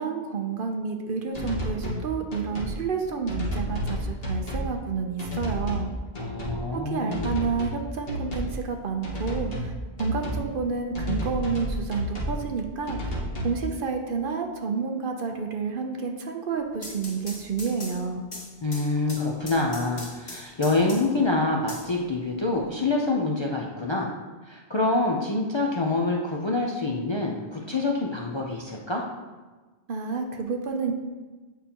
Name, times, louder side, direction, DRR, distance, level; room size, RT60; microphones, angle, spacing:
voice 1, 0.0-5.9 6.7-9.7 10.0-13.2 13.4-18.2 29.9-30.9, right 5 dB, 60° right, 4 dB, 0.8 m, -30 dB
sound 1, 1.3-2.0 2.3-2.7 3.3-4.7 5.2-5.9 6.1-6.6 7.1-7.8 8.1-8.6 9.0-9.7 10.0-10.5 10.9-12.4 12.9-13.6, equal, 65° left, 1.6 m, -31 dB
voice 2, 6.2-7.3 18.6-24.1 24.4-29.0, left 2 dB, 35° left, -2 dB, 0.5 m, -26 dB
sound 2, 16.6-21.2 21.7-22.6, left 2 dB, 80° left, 1.9 m, -41 dB
8.6 x 5.6 x 2.9 m, 1.3 s
omnidirectional pair, 1.1 m